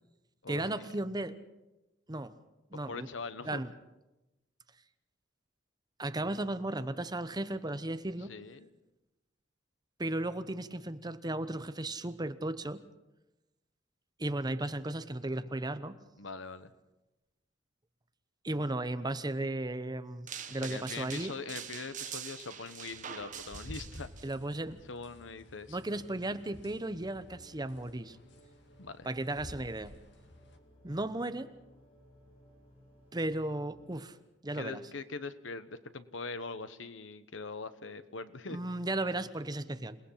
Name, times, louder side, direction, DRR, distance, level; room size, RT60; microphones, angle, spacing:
voice 1, 0.5-1.4 2.1-2.3 2.7-3.1 3.4-3.7 6.0-8.3 10.0-12.8 14.2-16.0 18.4-21.3 24.2-24.8 25.7-28.2 29.0-29.9 30.8-31.5 33.1-34.2 34.4-34.8 38.5-40.0, right 1 dB, 20° right, 11 dB, 0.9 m, -35 dB
voice 2, 2.9-3.6 8.3-8.7 16.2-16.7 20.5-24.1 24.9-25.8 28.8-29.1 34.5-38.6, left 4 dB, 85° left, 12 dB, 1.2 m, -42 dB
sound 1, 20.3-24.3, right 8 dB, 45° right, 1.2 m, -44 dB
sound 2, 22.8-30.6, left 1 dB, 65° left, 2.3 m, -52 dB
sound 3, 27.0-34.0, equal, 30° left, 5.7 m, -61 dB
28.0 x 19.0 x 5.8 m, 0.99 s
head